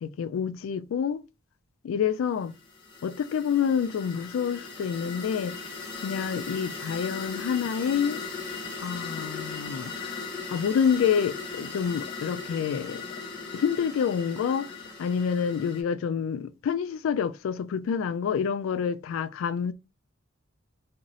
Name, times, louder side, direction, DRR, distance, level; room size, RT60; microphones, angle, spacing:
voice 1, 0.0-1.2 1.8-2.5 3.0-5.6 6.0-8.2 8.8-10.1 10.5-13.0 13.5-14.7 15.0-19.7, left 7 dB, 80° left, 0.3 m, -28 dB
sound 1, 2.4-15.8, left 4 dB, 25° left, 0.7 m, -38 dB
2.5 x 2.0 x 3.8 m
head